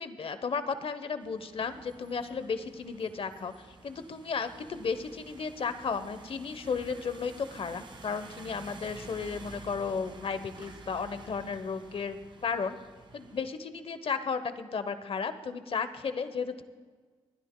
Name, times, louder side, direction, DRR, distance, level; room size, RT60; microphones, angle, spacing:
voice 1, 0.0-12.2 12.4-12.8 13.1-16.6, left 5 dB, 60° left, 11 dB, 0.9 m, -34 dB
sound 1, 1.2-13.4, right 3 dB, 45° right, 1.6 m, -50 dB
28.0 x 10.0 x 2.2 m, 1.5 s
cardioid pair, 60°, 11 cm